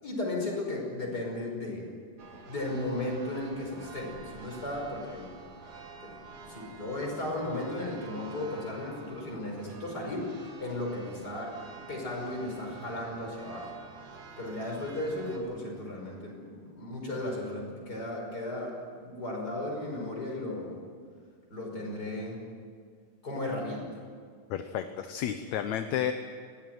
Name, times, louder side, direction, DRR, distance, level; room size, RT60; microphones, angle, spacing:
voice 1, 0.0-1.9 2.5-5.3 6.0-11.6 11.9-13.7 14.4-20.8 21.5-22.4 23.2-23.9, left 1 dB, 30° left, 0 dB, 5.8 m, -35 dB
Church bell, 2.2-15.4, right 4 dB, 55° right, 3.6 m, -48 dB
voice 2, 24.5-26.1, left 10 dB, 70° left, 8 dB, 2.0 m, -31 dB
21.0 x 17.0 x 9.3 m, 2.1 s
omnidirectional pair, 3.8 m